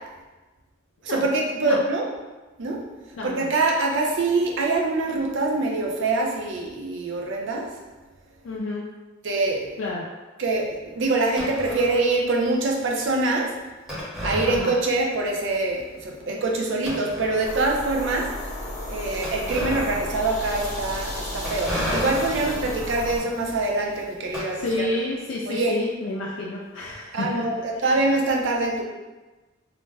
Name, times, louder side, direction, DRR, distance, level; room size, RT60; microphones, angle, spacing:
voice 1, 1.0-2.0 2.6-2.8 3.2-7.7 9.2-9.7 10.4-13.5 14.2-18.3 18.9-24.9 25.5-25.7 27.1-28.8, right 2 dB, 65° right, 0 dB, 0.5 m, -24 dB
voice 2, 3.1-3.5 8.4-8.8 9.8-10.1 14.4-14.7 24.5-27.9, left 2 dB, 70° left, -4 dB, 0.4 m, -30 dB
sound 1, 11.4-12.2 13.9-15.2 15.5-15.6 16.2-16.3 16.8-17.7 19.2-25.1, left 1 dB, ahead, 0.7 m, -33 dB
sound 2, 17.4-23.2, left 1 dB, 35° left, 0.9 m, -33 dB
2.4 x 2.1 x 3.2 m, 1.2 s
head